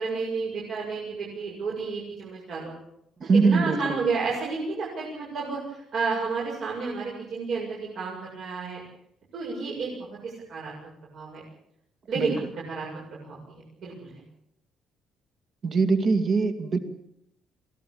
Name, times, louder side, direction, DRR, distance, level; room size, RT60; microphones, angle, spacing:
voice 1, 0.0-2.7 3.4-8.8 9.3-10.0 10.2-10.7 11.1-11.4 12.1-12.4 12.7-14.2, right 4 dB, 55° right, -4 dB, 7.4 m, -31 dB
voice 2, 3.2-4.0 12.2-12.3 15.6-16.8, right 4 dB, 35° right, 9 dB, 2.4 m, -22 dB
23.0 x 17.0 x 8.7 m, 0.75 s
cardioid pair, 165°, 0 cm